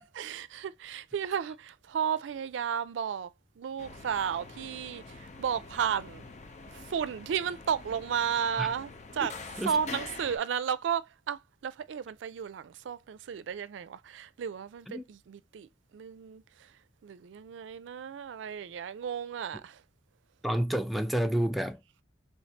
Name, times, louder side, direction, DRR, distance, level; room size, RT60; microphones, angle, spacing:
voice 1, 0.2-3.3 3.6-6.2 6.7-9.3 9.7-16.7 17.0-19.8, right 7 dB, 90° right, 0.4 m, -33 dB
sound 1, 3.8-10.4, left 3 dB, 40° left, 0.7 m, -46 dB
voice 2, 9.6-10.0 14.9-15.0 20.4-21.8, right 1 dB, ahead, 0.4 m, -29 dB
3.3 x 3.2 x 2.8 m
head